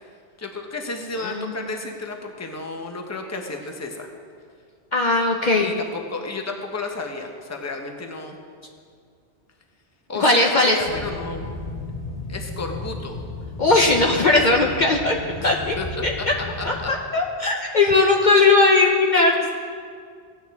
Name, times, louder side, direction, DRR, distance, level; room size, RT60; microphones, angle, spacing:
voice 1, 0.4-4.1 5.6-8.4 10.1-11.5 12.3-13.2 15.4-15.5 15.8-15.9 16.6-16.9, left 3 dB, 15° left, 3 dB, 0.8 m, -32 dB
voice 2, 1.2-1.5 4.9-5.7 10.2-10.7 13.6-15.2 15.4-15.8 16.0-16.1 16.6-16.7 17.1-19.3, left 3 dB, 50° left, 0 dB, 0.7 m, -18 dB
sound 1, 10.9-16.9, left 2 dB, 80° left, 1.3 m, -34 dB
16.5 x 8.8 x 3.5 m, 2.2 s
omnidirectional pair, 1.1 m